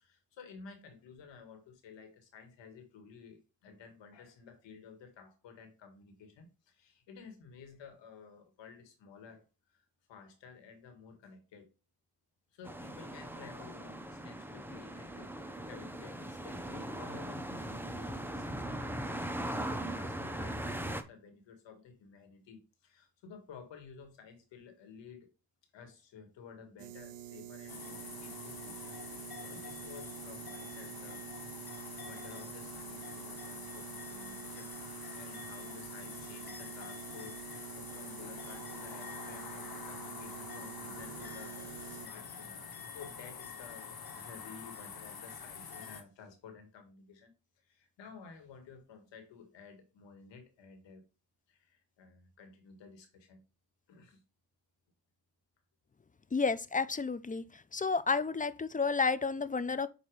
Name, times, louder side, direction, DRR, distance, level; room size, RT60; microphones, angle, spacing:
voice 1, 0.0-11.7 12.5-25.3 25.7-31.3 31.9-42.6 42.9-47.3 47.6-51.0 51.5-53.4 53.9-54.2, left 5 dB, 85° left, 1.9 m, -53 dB
sound 1, 12.6-21.0, right 1 dB, 5° right, 0.9 m, -39 dB
sound 2, 26.8-42.1, right 12 dB, 75° right, 0.7 m, -47 dB
sound 3, 27.7-46.0, left 6 dB, 55° left, 1.5 m, -46 dB
voice 2, 56.3-57.4 57.7-59.9, left 4 dB, 20° left, 0.5 m, -31 dB
8.5 x 2.9 x 4.8 m
cardioid pair, 70°, 43 cm